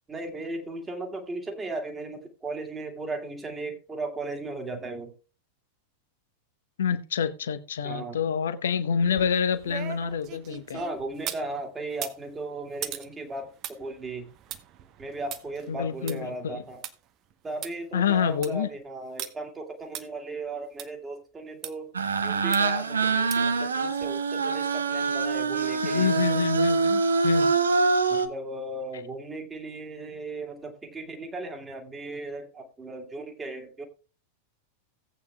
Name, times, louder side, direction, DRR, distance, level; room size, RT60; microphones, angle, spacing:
voice 1, 0.1-5.1 7.8-8.2 10.7-14.3 15.0-16.9 17.4-21.9 22.2-26.1 28.1-33.8, right 2 dB, 15° right, 2.0 m, -36 dB
voice 2, 6.8-10.8 15.7-16.6 17.9-18.7 25.8-27.5, left 7 dB, 65° left, 0.8 m, -27 dB
sound 1, 9.0-11.5 11.9-16.9 17.3-17.4 17.6-17.7 18.2-18.6 19.2-19.3 19.9-20.0 20.8-20.9 21.6-21.7 22.5-22.8 23.3-23.6 24.0-24.1, right 10 dB, 35° right, 0.8 m, -39 dB
sound 2, 21.9-28.3, right 4 dB, 70° right, 0.8 m, -25 dB
17.5 x 8.4 x 2.2 m
figure-of-eight pair, 90°, 0 cm